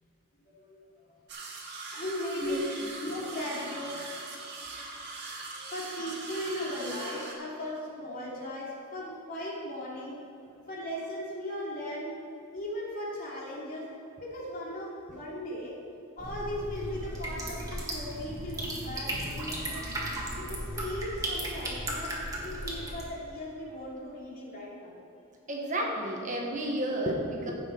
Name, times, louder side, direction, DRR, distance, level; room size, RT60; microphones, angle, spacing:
voice 1, 0.5-1.2 1.9-2.7 3.0-4.0 5.5-10.2 10.7-12.1 12.5-15.8 16.1-19.8 20.4-22.1 22.4-24.9, left 1 dB, 45° left, -5 dB, 2.8 m, -37 dB
sound 1, 1.3-7.3, right 3 dB, 55° right, 1.7 m, -41 dB
sound 2, 16.2-23.0, right 1 dB, 15° right, 1.6 m, -36 dB
voice 2, 25.5-27.5, right 1 dB, 35° right, -1 dB, 1.4 m, -31 dB
15.5 x 6.2 x 4.6 m, 2.8 s
head